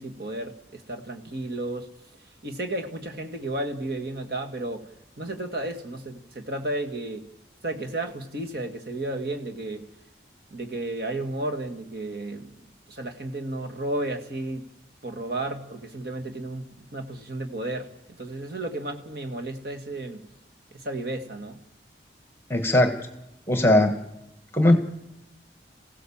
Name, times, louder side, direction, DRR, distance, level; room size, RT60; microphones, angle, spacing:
voice 1, 0.0-1.9 2.4-4.9 5.2-7.3 7.6-9.9 10.5-12.6 12.9-14.7 15.0-17.9 18.2-20.3 20.7-21.6, right 2 dB, 55° right, 3 dB, 1.8 m, -33 dB
voice 2, 22.5-23.0 23.5-23.9 24.5-24.8, left 1 dB, 15° left, 6 dB, 1.5 m, -18 dB
26.5 x 16.0 x 7.2 m, 0.91 s
head